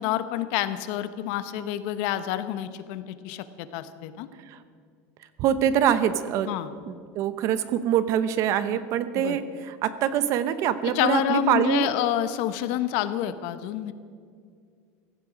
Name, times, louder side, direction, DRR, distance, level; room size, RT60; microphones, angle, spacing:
voice 1, 0.0-4.3 6.5-6.7 8.7-8.8 9.1-9.4 10.9-13.9, left 12 dB, 65° left, 12 dB, 1.0 m, -28 dB
voice 2, 5.4-6.5 6.9-11.9, right 10 dB, 50° right, 12 dB, 0.9 m, -24 dB
17.0 x 15.0 x 5.1 m, 2.2 s
supercardioid pair, 140°, 7 cm